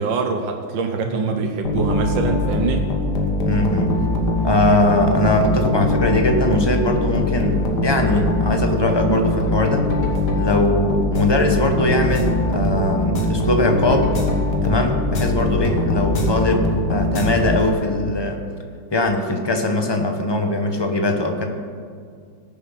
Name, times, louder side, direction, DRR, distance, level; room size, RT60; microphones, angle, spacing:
voice 1, 0.0-2.9 8.2-8.3, right 4 dB, 75° right, 3 dB, 1.6 m, -24 dB
sound 1, 1.6-18.1, left 1 dB, 60° left, 1.9 m, -22 dB
voice 2, 3.4-4.0 4.4-9.8 10.3-14.2 14.6-18.4 18.9-21.4, left 2 dB, 20° left, 5 dB, 0.7 m, -20 dB
20.0 x 7.2 x 5.8 m, 2.1 s
omnidirectional pair, 2.1 m